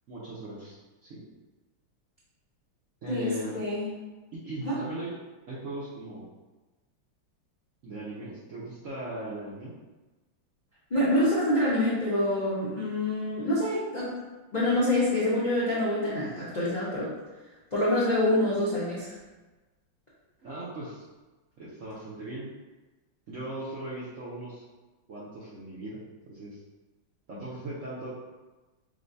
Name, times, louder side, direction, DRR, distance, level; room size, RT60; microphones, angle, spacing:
voice 1, 0.1-0.8 1.0-1.2 3.0-3.5 4.3-5.1 5.5-6.3 7.8-9.7 20.4-21.0 21.6-22.5 23.3-24.6 25.1-26.0 26.3-26.6 27.3-28.1, right 2 dB, 60° right, -8 dB, 0.8 m, -38 dB
voice 2, 3.1-3.9 4.6-4.8 10.9-14.1 14.5-17.1 17.7-19.2, left 1 dB, 60° left, -9 dB, 0.4 m, -26 dB
6.5 x 2.2 x 2.6 m, 1.2 s
omnidirectional pair, 2.2 m